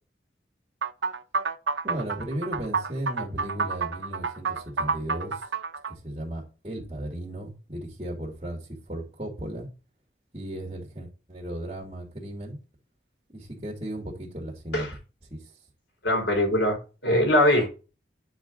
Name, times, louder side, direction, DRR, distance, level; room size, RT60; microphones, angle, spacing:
sound 1, 0.8-5.9, right 4 dB, 80° right, 0.8 m, -29 dB
voice 1, 1.8-5.5 5.9-9.7 10.3-12.6 13.3-14.9 15.3-15.4, right 1 dB, 30° right, 2.7 m, -35 dB
voice 2, 16.0-16.8 17.0-17.7, left 1 dB, 75° left, 4.2 m, -21 dB
10.5 x 4.9 x 3.8 m
head